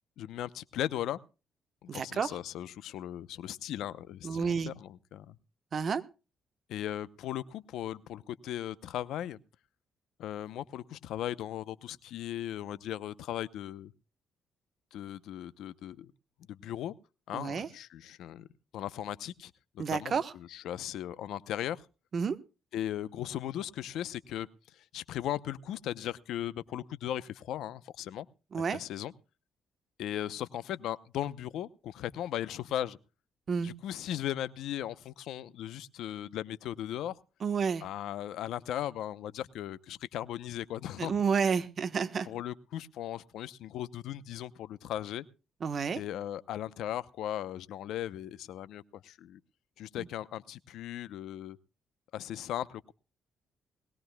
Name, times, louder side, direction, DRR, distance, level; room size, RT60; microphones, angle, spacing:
voice 1, 0.2-1.2 1.8-5.4 6.7-9.4 10.2-13.9 14.9-16.1 16.5-16.9 17.3-18.5 18.7-21.8 22.7-28.3 28.6-29.1 30.0-33.0 33.6-37.1 37.8-41.2 42.2-45.2 45.9-49.4 49.8-51.6 52.1-52.9, left 12 dB, 80° left, 0.8 m, -37 dB
voice 2, 1.9-2.3 4.2-4.7 5.7-6.0 17.3-17.7 19.8-20.3 22.1-22.4 28.5-28.8 33.5-33.7 37.4-37.8 41.0-42.3 45.6-46.0, right 6 dB, 50° right, 1.2 m, -30 dB
21.0 x 17.5 x 2.3 m
cardioid pair, 90°, 0 cm